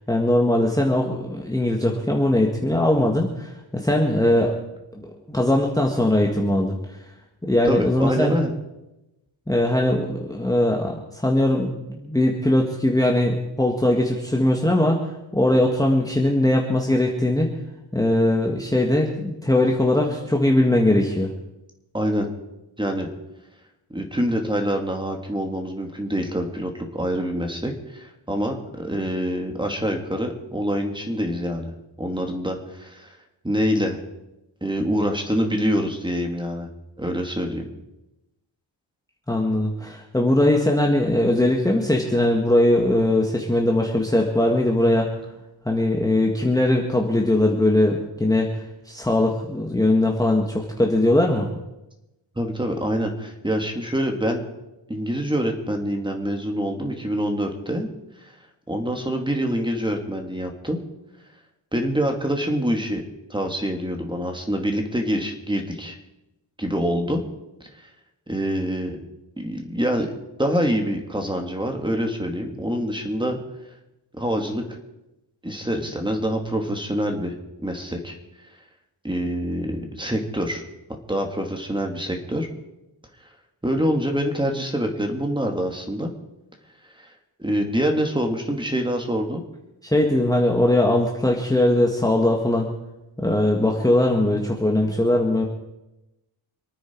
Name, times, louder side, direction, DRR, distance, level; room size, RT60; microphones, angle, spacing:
voice 1, 0.1-4.5 4.9-6.8 7.4-8.4 9.5-17.5 17.9-21.3 39.3-45.1 45.7-51.5 89.8-92.7 93.2-95.4, left 1 dB, 5° left, -1 dB, 1.7 m, -20 dB
voice 2, 7.7-8.5 21.9-22.3 22.8-23.1 23.9-31.7 32.0-33.2 33.4-34.0 34.6-36.7 37.0-37.7 52.4-54.4 54.9-57.9 58.2-58.3 58.7-60.8 61.7-63.0 63.3-66.0 66.6-67.2 68.3-69.0 69.4-70.1 70.4-73.4 74.1-74.8 75.4-77.3 77.6-78.2 79.0-80.6 81.1-82.5 83.6-86.1 87.0-87.1 87.4-89.4, equal, 10° right, 3 dB, 2.3 m, -25 dB
26.5 x 9.4 x 4.6 m, 0.95 s
wide cardioid pair, 120°, 48 cm